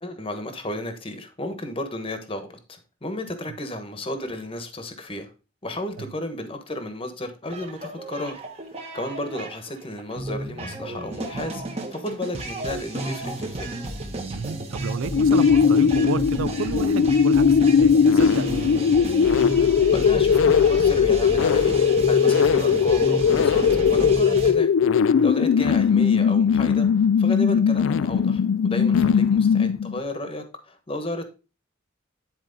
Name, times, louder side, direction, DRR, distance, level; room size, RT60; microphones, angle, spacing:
voice 1, 0.0-5.3 5.6-8.4 8.7-13.7 19.9-21.8 22.0-23.6 23.9-24.7 25.0-26.9 27.2-31.3, left 1 dB, 25° left, 1.1 m, -33 dB
sound 1, 7.5-24.5, right 1 dB, 30° right, 1.3 m, -32 dB
voice 2, 14.3-18.8 25.1-25.3 29.0-29.1, right 6 dB, 75° right, 0.4 m, -32 dB
sound 2, 15.1-30.0, left 6 dB, 70° left, 0.3 m, -19 dB
10.0 x 4.5 x 3.9 m
head